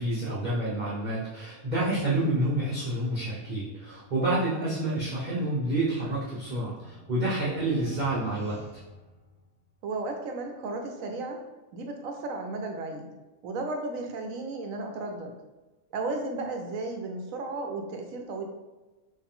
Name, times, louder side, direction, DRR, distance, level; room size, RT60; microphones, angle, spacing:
voice 1, 0.0-8.6, right 1 dB, 40° right, -7 dB, 0.9 m, -28 dB
voice 2, 4.5-4.9 9.8-11.4 11.7-13.1 13.4-15.3 15.9-18.4, right 3 dB, 75° right, 3 dB, 1.0 m, -34 dB
sound 1, 6.4-9.8, left 2 dB, 85° left, 1.6 m, -50 dB
4.4 x 3.2 x 3.7 m, 1.1 s
omnidirectional pair, 1.5 m